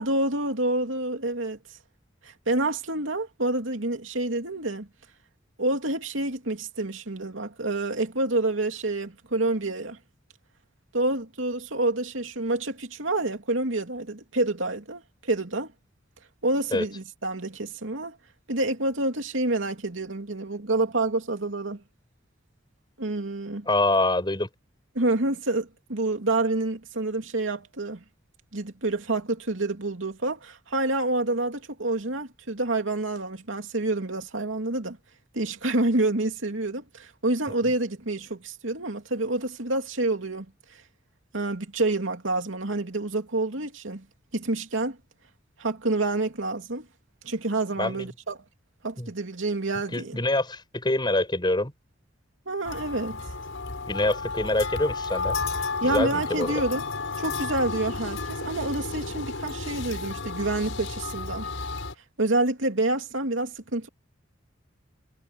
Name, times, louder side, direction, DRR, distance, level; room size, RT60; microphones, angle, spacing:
voice 1, 0.0-1.6 2.2-4.9 5.6-10.0 10.9-15.7 16.4-18.2 18.5-21.8 23.0-23.7 24.9-28.0 28.5-35.0 35.3-40.5 41.3-44.0 44.3-45.0 45.6-46.8 47.2-48.4 48.8-50.2 52.5-53.2 55.8-56.9 57.2-61.5 62.2-63.9, right 2 dB, 90° right, 2.8 m, -28 dB
voice 2, 23.7-24.5 47.8-48.1 49.0-49.1 49.9-51.7 53.9-55.4 55.8-56.5, left 2 dB, 25° left, 5.6 m, -25 dB
sound 1, 52.6-61.9, left 4 dB, 90° left, 5.1 m, -32 dB
head